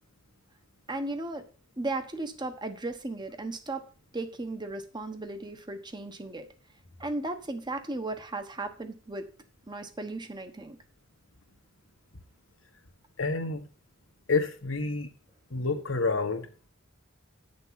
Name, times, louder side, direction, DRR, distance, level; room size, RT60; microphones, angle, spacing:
voice 1, 0.9-1.4 1.8-3.9 4.1-6.5 7.0-9.3 9.7-10.8, right 2 dB, 20° right, 7 dB, 1.2 m, -35 dB
voice 2, 13.2-13.6 14.3-15.1 15.5-16.7, left 3 dB, 85° left, 6 dB, 1.6 m, -29 dB
9.6 x 6.8 x 5.9 m, 0.39 s
head